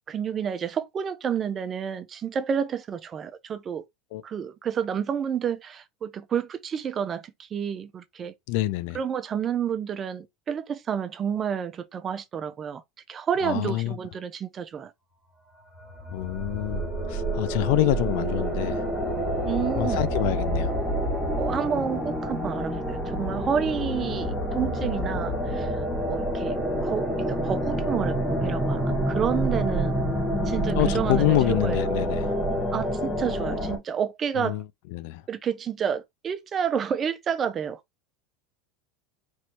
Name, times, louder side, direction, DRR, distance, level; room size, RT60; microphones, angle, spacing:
voice 1, 0.1-3.8 4.2-8.3 8.9-12.8 13.1-14.9 19.4-20.1 21.4-30.0 30.4-31.8 32.7-34.6 35.3-37.8, right 7 dB, 25° right, 0.5 m, -30 dB
voice 2, 8.5-9.0 13.4-14.0 16.1-18.8 19.8-20.7 30.7-32.3 34.4-34.6 34.9-35.2, left 15 dB, 65° left, 0.4 m, -26 dB
sound 1, 15.7-33.8, equal, 10° left, 1.5 m, -28 dB
4.4 x 3.1 x 2.8 m
supercardioid pair, 145°, 0 cm